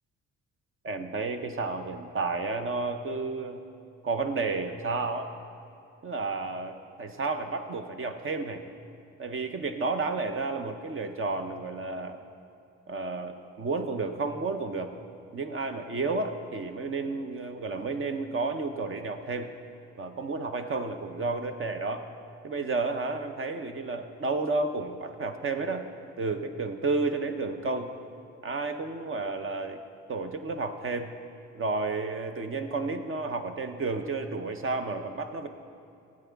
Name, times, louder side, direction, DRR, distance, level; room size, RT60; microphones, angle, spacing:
voice 1, 0.8-3.6 4.0-5.3 6.0-8.6 9.2-12.2 12.9-14.9 15.3-19.5 20.0-22.1 22.4-25.8 26.2-27.9 28.4-29.8 30.1-31.1 31.5-35.5, right 3 dB, 45° right, 7 dB, 0.7 m, -31 dB
14.0 x 8.5 x 3.5 m, 2.7 s
cardioid pair, 90°, 30 cm